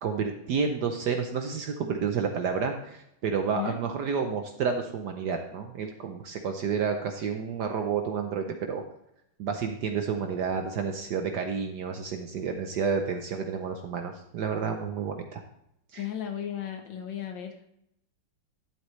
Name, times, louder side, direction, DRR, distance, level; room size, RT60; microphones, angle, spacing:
voice 1, 0.0-8.8 9.4-15.4 15.9-16.1, right 6 dB, 65° right, 5 dB, 1.1 m, -30 dB
voice 2, 16.0-17.7, left 10 dB, 65° left, 5 dB, 1.5 m, -35 dB
12.0 x 7.7 x 3.2 m, 0.78 s
omnidirectional pair, 2.4 m